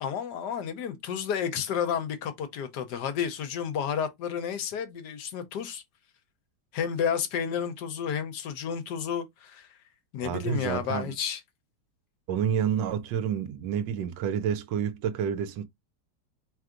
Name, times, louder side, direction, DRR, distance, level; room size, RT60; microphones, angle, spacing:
voice 1, 0.0-5.8 6.7-9.7 10.1-11.4, left 8 dB, 75° left, 1.3 m, -31 dB
voice 2, 10.2-11.1 12.3-15.7, right 8 dB, 85° right, 1.3 m, -29 dB
4.6 x 3.3 x 2.4 m
omnidirectional pair, 1.9 m